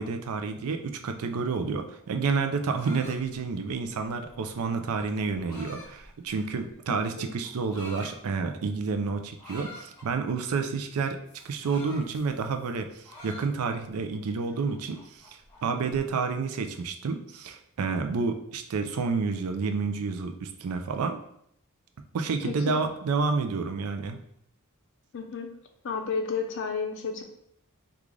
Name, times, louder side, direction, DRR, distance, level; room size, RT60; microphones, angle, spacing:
voice 1, 0.0-11.2 11.4-21.2 22.1-24.2, right 4 dB, 80° right, 6 dB, 0.4 m, -30 dB
sound 1, 2.5-6.7 7.4-8.1 9.4-10.1 11.3-12.7 13.0-13.9 14.3-16.0, left 1 dB, 20° left, 1.2 m, -47 dB
voice 2, 6.9-7.4 22.4-22.8 25.1-25.5 25.8-27.2, left 5 dB, 60° left, 4 dB, 0.5 m, -32 dB
3.1 x 2.4 x 3.7 m, 0.73 s
head